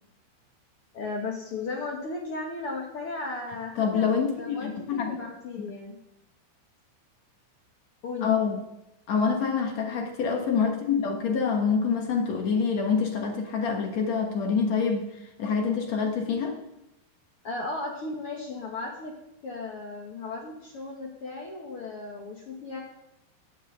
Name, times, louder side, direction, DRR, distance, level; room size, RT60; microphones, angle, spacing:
voice 1, 0.9-6.0 8.0-8.3 17.4-19.1 19.4-22.8, left 3 dB, 85° left, -1 dB, 1.2 m, -35 dB
voice 2, 3.8-5.2 5.6-5.7 8.2-8.6 9.1-15.1 15.4-16.6, left 6 dB, 65° left, 3 dB, 1.7 m, -26 dB
9.8 x 9.0 x 7.8 m, 0.87 s
omnidirectional pair, 4.9 m